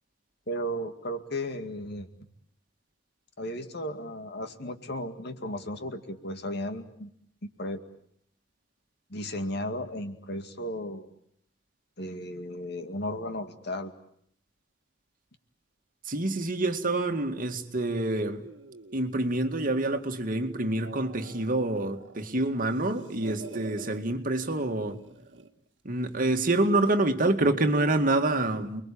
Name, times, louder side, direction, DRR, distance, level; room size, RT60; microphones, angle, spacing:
voice 1, 0.5-2.1 3.4-7.1 7.4-7.8 9.1-11.1 12.0-13.9, equal, 60° left, 2.3 m, -35 dB
voice 2, 16.1-18.4 18.9-25.0 25.8-28.8, right 2 dB, 50° right, 2.2 m, -27 dB
sound 1, 18.4-20.2 20.6-22.3 22.6-24.0 24.8-25.6, right 3 dB, 70° right, 1.8 m, -47 dB
29.5 x 22.0 x 8.7 m
head